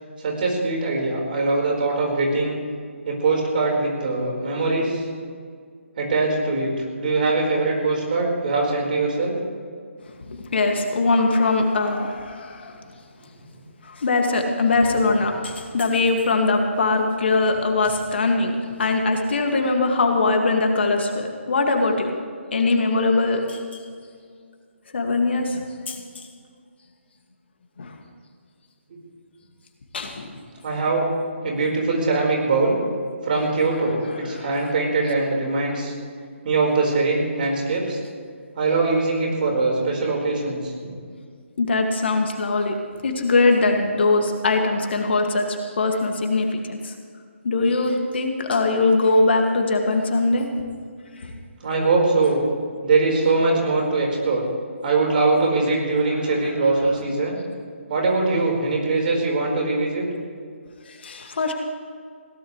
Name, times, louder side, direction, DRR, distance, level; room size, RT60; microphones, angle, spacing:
voice 1, 0.2-2.6 3.0-5.1 6.0-9.4 30.6-31.1 31.4-32.8 33.2-35.9 36.4-38.0 38.6-40.6 51.6-52.4 52.8-54.4 54.8-57.4 57.9-60.0, right 3 dB, 45° right, -1 dB, 4.7 m, -22 dB
voice 2, 10.3-12.8 13.8-22.1 22.5-23.6 24.9-26.3 27.8-28.0 29.9-30.3 34.3-34.5 41.6-42.7 43.0-46.9 47.4-50.5 51.2-51.3 60.9-61.5, left 3 dB, 55° left, 3 dB, 2.2 m, -21 dB
21.5 x 17.5 x 3.3 m, 2.1 s
figure-of-eight pair, 145°, 7 cm